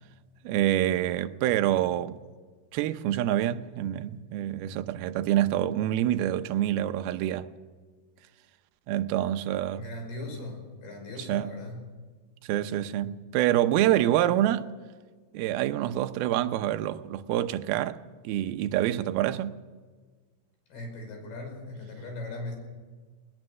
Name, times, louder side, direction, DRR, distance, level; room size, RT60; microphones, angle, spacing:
voice 1, 0.4-2.2 2.7-7.5 8.9-9.8 11.3-11.5 12.4-14.7 15.3-19.5, right 12 dB, 75° right, 2.5 m, -26 dB
voice 2, 9.7-12.0 20.7-22.5, left 2 dB, 65° left, 7.5 m, -39 dB
21.0 x 19.5 x 6.3 m
omnidirectional pair, 5.0 m